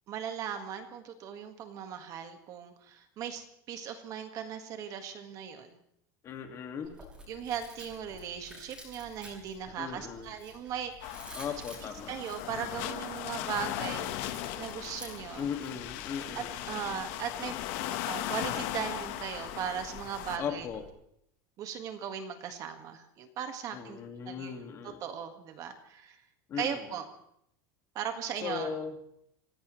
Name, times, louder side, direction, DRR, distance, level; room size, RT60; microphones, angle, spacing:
voice 1, 0.1-5.8 7.3-11.3 12.1-14.1 14.5-15.5 16.3-17.5 18.0-20.6 21.6-24.0 24.3-24.5 24.8-26.2 26.5-27.0 27.9-28.7, right 8 dB, 35° right, 6 dB, 1.7 m, -38 dB
voice 2, 6.2-7.0 9.8-10.3 11.3-12.1 15.4-16.6 20.4-20.8 23.7-25.0 26.5-26.9 28.4-29.0, left 7 dB, 25° left, 5 dB, 2.0 m, -37 dB
Chewing mastication, 6.8-20.9, equal, 10° right, 6.1 m, -52 dB
sound 1, 11.0-20.4, left 13 dB, 50° left, 1.3 m, -38 dB
26.5 x 17.0 x 3.2 m, 0.73 s
supercardioid pair, 165°, 11 cm